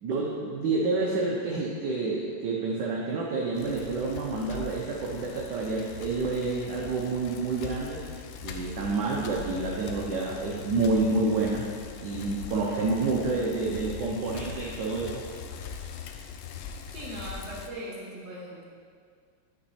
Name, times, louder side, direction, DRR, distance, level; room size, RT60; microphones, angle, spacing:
voice 1, 0.0-8.0 8.4-11.7 12.0-15.2, right 3 dB, 65° right, -3 dB, 1.2 m, -28 dB
Bicycle, 3.6-17.7, left 7 dB, 80° left, 1.4 m, -41 dB
voice 2, 16.9-18.6, right 1 dB, 35° right, -5 dB, 1.7 m, -39 dB
8.6 x 5.3 x 4.2 m, 2.1 s
omnidirectional pair, 2.4 m